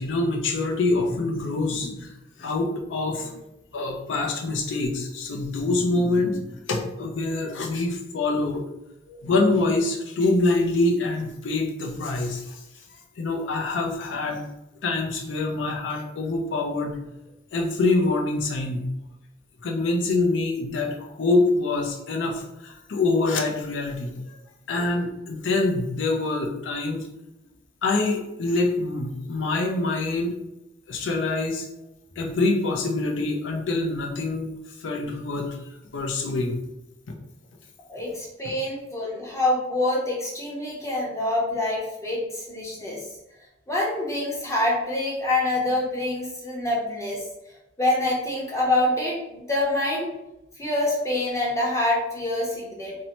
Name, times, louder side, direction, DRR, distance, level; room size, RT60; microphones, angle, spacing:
voice 1, 0.0-2.1 2.4-3.4 3.7-8.6 9.1-12.6 13.2-14.4 14.8-17.0 17.5-18.9 19.6-24.4 24.7-27.1 27.8-30.4 30.9-31.7 32.2-34.5 34.8-35.6 35.9-36.6 38.4-38.5, left 2 dB, 75° left, 2 dB, 0.5 m, -25 dB
voice 2, 37.9-43.1 43.7-47.2 47.8-50.1 50.6-52.9, left 1 dB, 15° left, -4 dB, 0.7 m, -26 dB
2.7 x 2.1 x 2.9 m, 0.91 s
head